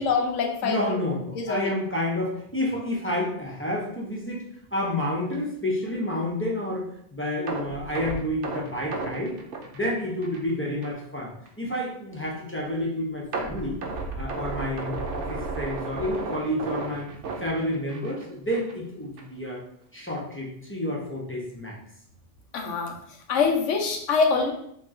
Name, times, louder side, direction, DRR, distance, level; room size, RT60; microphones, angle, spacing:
voice 1, 0.0-0.8 1.3-1.7 22.5-23.0 23.3-24.5, left 5 dB, 90° left, 2 dB, 1.1 m, -24 dB
voice 2, 0.6-4.4 4.7-6.9 7.1-9.4 9.7-11.3 11.6-13.8 14.2-17.1 17.4-19.6 19.9-21.8, left 1 dB, 15° left, -4 dB, 0.5 m, -29 dB
sound 1, 7.5-10.5 10.8-11.0 11.5-11.6 13.3-18.2 18.5-18.7 19.2-19.3, right 3 dB, 80° right, 1.0 m, -34 dB
3.1 x 2.9 x 3.6 m, 0.71 s
omnidirectional pair, 1.2 m